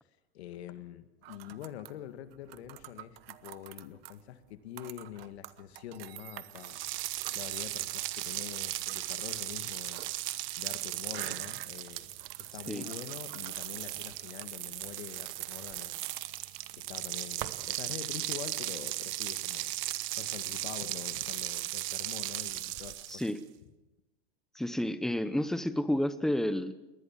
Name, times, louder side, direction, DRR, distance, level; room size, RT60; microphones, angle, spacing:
voice 1, 0.3-6.8 7.3-10.1 10.6-12.1 12.4-16.1 16.7-19.7 20.1-23.2, left 11 dB, 75° left, 10 dB, 1.9 m, -45 dB
sound 1, 1.2-14.5, right 16 dB, 65° right, 1.1 m, -49 dB
sound 2, 6.6-23.4, right 17 dB, 40° right, 1.1 m, -37 dB
voice 2, 24.5-26.7, left 1 dB, ahead, 13 dB, 0.7 m, -30 dB
21.0 x 19.5 x 7.4 m, 1.0 s
supercardioid pair, 145°, 32 cm